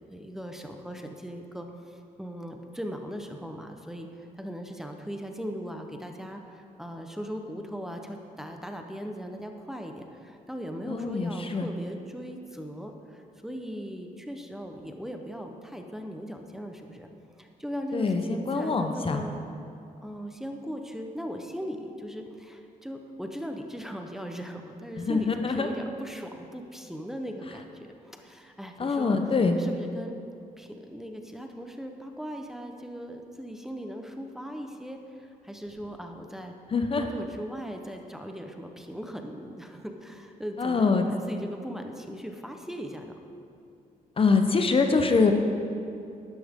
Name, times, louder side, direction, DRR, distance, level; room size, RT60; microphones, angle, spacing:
voice 1, 0.0-17.1 17.4-19.4 20.0-29.2 29.5-30.2 30.6-36.5 36.9-43.2, equal, 5° right, 3 dB, 0.9 m, -39 dB
voice 2, 10.9-11.7 17.9-19.2 25.0-25.7 28.8-29.5 36.7-37.0 40.6-41.1 44.2-45.3, left 4 dB, 35° left, 5 dB, 0.8 m, -24 dB
11.5 x 11.0 x 3.7 m, 2.6 s
cardioid pair, 90°, 15 cm